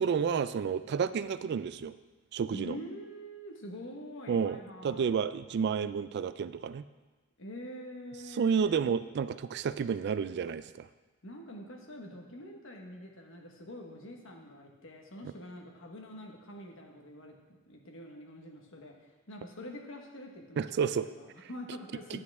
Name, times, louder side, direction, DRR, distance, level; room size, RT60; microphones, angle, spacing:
voice 1, 0.0-1.9 2.3-2.7 4.3-6.8 8.3-10.9 20.6-21.1, right 6 dB, 50° right, 13 dB, 0.3 m, -30 dB
voice 2, 2.5-5.2 7.4-8.8 11.2-18.9 19.3-22.2, equal, 65° left, 1 dB, 1.3 m, -45 dB
9.6 x 8.4 x 3.5 m, 1.2 s
head